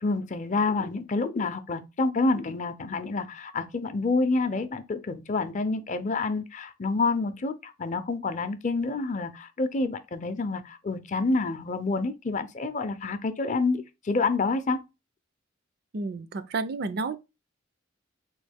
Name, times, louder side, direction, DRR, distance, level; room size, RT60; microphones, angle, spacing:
voice 1, 0.0-14.8, left 3 dB, 40° left, 0.5 m, -28 dB
voice 2, 15.9-17.2, right 3 dB, 55° right, 0.4 m, -31 dB
4.0 x 3.1 x 3.4 m
head